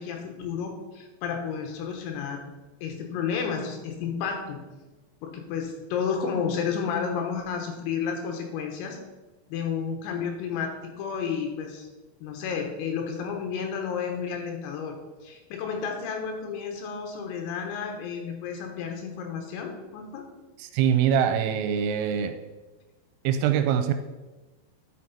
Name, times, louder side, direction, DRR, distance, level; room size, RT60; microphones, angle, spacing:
voice 1, 0.0-2.4 2.8-4.6 5.2-9.0 9.5-11.9 12.2-20.2, left 6 dB, 90° left, 3 dB, 3.9 m, -31 dB
voice 2, 20.6-22.3 23.2-23.9, right 8 dB, 90° right, 8 dB, 3.3 m, -23 dB
11.5 x 6.0 x 4.2 m, 1.2 s
omnidirectional pair, 5.9 m